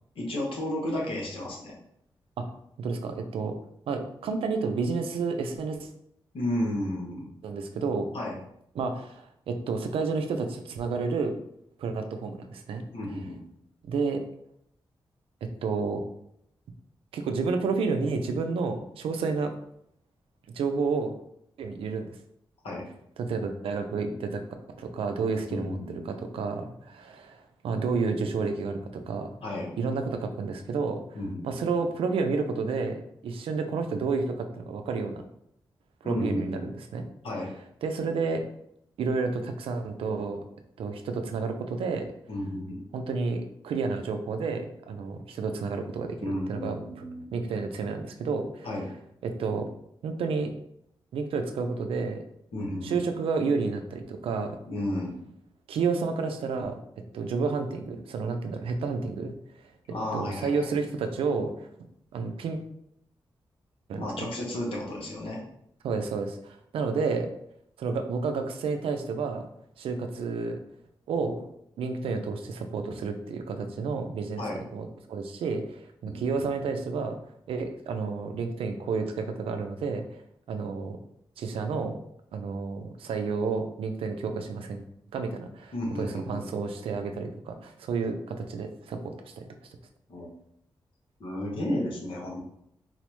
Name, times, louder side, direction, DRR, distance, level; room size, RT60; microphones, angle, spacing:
voice 1, 0.1-1.7 6.3-7.2 8.1-8.4 12.9-13.4 22.6-22.8 25.5-26.1 29.4-29.7 31.1-31.4 36.0-36.7 37.2-37.5 42.3-42.8 46.2-47.3 48.6-48.9 52.5-53.0 54.7-55.1 59.9-60.7 64.0-65.4 74.4-74.6 76.0-76.8 85.7-86.4 90.1-90.3 91.2-92.4, left 1 dB, 80° left, -2 dB, 0.9 m, -32 dB
voice 2, 2.8-3.6 3.9-5.9 7.4-8.1 8.8-11.3 11.8-12.8 13.8-14.2 15.4-16.0 17.1-19.5 20.5-21.1 21.6-22.1 23.2-24.4 24.8-25.8 26.1-29.3 29.8-31.0 31.4-35.2 36.0-36.7 36.9-37.0 37.8-38.5 39.0-40.4 40.8-42.1 42.9-47.0 47.3-48.7 49.2-49.7 50.0-50.5 51.1-52.2 52.8-54.6 55.7-56.8 57.1-59.3 60.1-61.7 62.1-62.6 63.9-64.3 65.8-67.3 67.8-69.5 69.8-70.6 71.1-71.5 71.8-74.4 74.7-77.2 77.5-80.2 80.5-81.0 81.4-82.0 82.3-84.8 85.1-89.4, right 4 dB, 90° right, 6 dB, 0.4 m, -30 dB
4.1 x 2.0 x 3.0 m, 0.74 s
cardioid pair, 55°, 9 cm